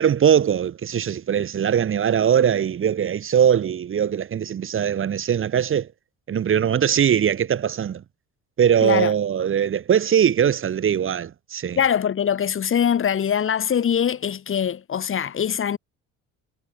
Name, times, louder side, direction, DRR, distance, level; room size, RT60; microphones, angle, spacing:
voice 1, 0.0-5.9 6.3-8.0 8.6-11.8, right 8 dB, 40° right, 1.9 m, -21 dB
voice 2, 8.8-9.1 11.8-15.8, left 8 dB, 40° left, 3.2 m, -22 dB
cardioid pair, 130°, 33 cm